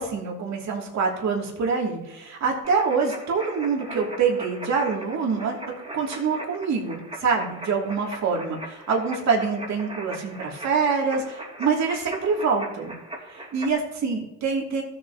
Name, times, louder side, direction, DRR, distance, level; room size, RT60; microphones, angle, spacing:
voice 1, 0.0-5.6 5.9-12.9 13.5-14.8, right 5 dB, 65° right, -1 dB, 2.8 m, -25 dB
sound 1, 2.6-13.7, right 1 dB, 20° right, 2.8 m, -40 dB
15.5 x 7.8 x 3.0 m, 0.92 s
cardioid pair, 90°, 30 cm